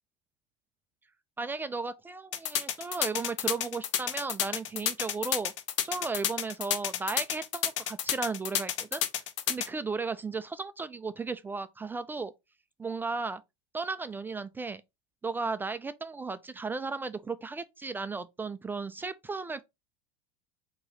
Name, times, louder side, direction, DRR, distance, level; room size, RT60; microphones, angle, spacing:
voice 1, 1.4-5.5 5.8-9.0 9.5-12.3 12.8-13.4 13.7-14.8 15.2-19.6, right 4 dB, 15° right, 0.3 m, -35 dB
sound 1, 2.3-9.7, left 10 dB, 85° left, 0.7 m, -30 dB
4.0 x 2.9 x 3.9 m
supercardioid pair, 115°, 15 cm